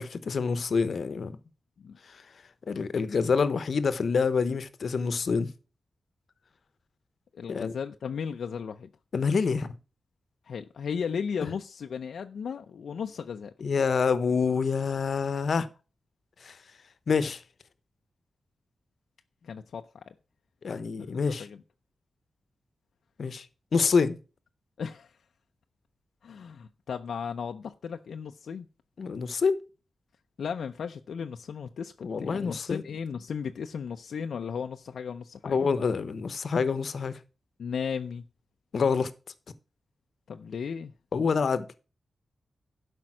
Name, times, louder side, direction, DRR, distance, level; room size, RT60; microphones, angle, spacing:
voice 1, 0.0-1.4 2.1-2.2 2.7-5.5 7.5-7.7 9.1-9.8 13.6-15.7 16.4-16.6 17.1-17.4 20.6-21.5 23.2-23.4 23.7-24.2 29.0-29.6 32.0-32.8 35.4-37.2 38.7-39.1 41.1-41.8, left 5 dB, 65° left, 0.9 m, -27 dB
voice 2, 7.3-8.9 10.5-13.5 19.4-20.1 21.0-21.6 24.8-25.1 26.2-28.7 30.4-35.6 37.6-38.2 40.3-40.9, left 6 dB, 85° left, 0.6 m, -35 dB
12.0 x 5.3 x 6.1 m
wide cardioid pair, 110°, 0 cm